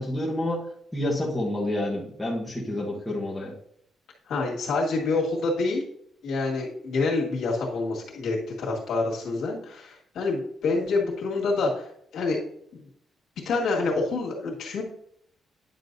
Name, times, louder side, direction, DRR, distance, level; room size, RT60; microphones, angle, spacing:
voice 1, 0.0-3.5, left 1 dB, 5° left, -5 dB, 1.3 m, -29 dB
voice 2, 4.3-5.8 6.2-11.9 12.1-12.4 12.7-12.8 13.5-14.8, left 3 dB, 70° left, -2 dB, 2.0 m, -27 dB
9.7 x 6.8 x 2.7 m, 0.69 s
cardioid pair, 160°, 0 cm